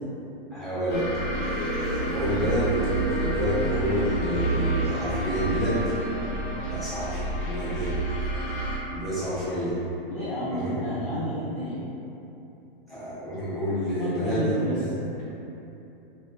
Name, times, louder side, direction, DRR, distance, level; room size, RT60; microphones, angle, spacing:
voice 1, 0.5-1.1 1.4-2.8 3.1-5.9 6.7-7.9 8.9-9.7 10.5-10.7 11.0-11.1 12.9-14.6, equal, ahead, -14 dB, 0.8 m, -29 dB
sound 1, 0.9-8.8, right 2 dB, 65° left, 1.4 m, -29 dB
voice 2, 6.4-6.8 10.1-11.9 14.0-14.8, equal, 25° left, -9 dB, 0.4 m, -31 dB
3.0 x 3.0 x 2.3 m, 2.9 s
hypercardioid pair, 145°, 30 cm